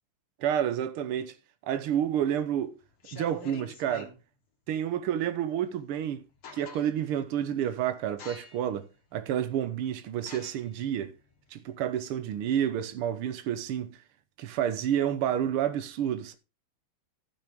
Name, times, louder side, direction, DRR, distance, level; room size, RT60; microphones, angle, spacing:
voice 1, 0.4-1.3 1.6-2.7 3.1-4.1 4.7-6.2 6.5-8.9 9.1-11.1 11.5-14.0 14.4-16.3, right 10 dB, 75° right, 1.8 m, -29 dB
sound 1, 2.0-2.4 2.9-4.2 5.8-5.9 6.2-7.1 7.6-7.8 8.2-8.8 9.3-9.4 10.2-12.5, left 5 dB, 75° left, 2.7 m, -47 dB
15.0 x 6.0 x 3.6 m
omnidirectional pair, 2.4 m